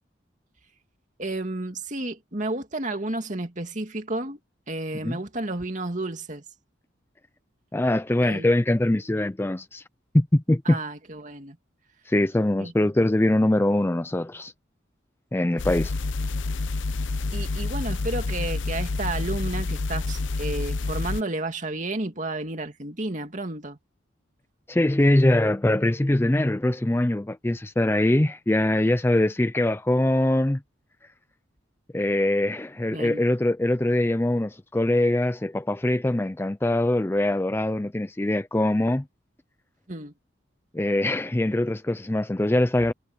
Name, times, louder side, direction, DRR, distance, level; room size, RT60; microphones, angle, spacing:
voice 1, 1.2-4.4 4.7-6.4 8.2-8.5 10.7-11.6 12.6-13.1 17.3-23.8 32.9-33.2 39.9-40.1, right 2 dB, 40° right, 2.4 m, -32 dB
voice 2, 7.7-9.8 10.1-10.8 12.1-14.5 15.3-15.9 24.7-30.6 31.9-39.0 40.7-42.9, left 1 dB, 10° left, 0.4 m, -23 dB
sound 1, 15.6-21.2, left 3 dB, 70° left, 0.8 m, -28 dB
head